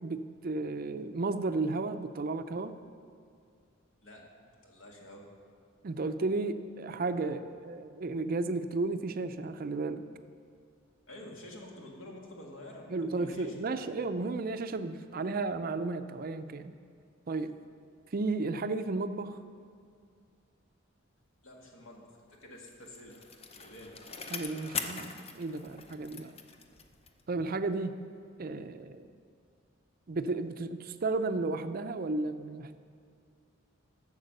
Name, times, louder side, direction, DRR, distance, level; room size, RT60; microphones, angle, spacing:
voice 1, 0.0-2.7 5.8-10.0 12.9-16.7 17.3-17.5 18.1-19.4 24.3-26.4 27.3-27.9 28.4-29.1 30.1-32.7, right 3 dB, 45° right, 10 dB, 0.5 m, -33 dB
voice 2, 4.0-5.2 11.1-13.9 21.4-23.2 23.5-23.9, left 1 dB, 75° left, -1 dB, 1.9 m, -49 dB
Bicycle, 22.4-27.3 27.7-27.8, left 5 dB, 30° left, 0.6 m, -42 dB
12.0 x 7.3 x 6.6 m, 2.2 s
head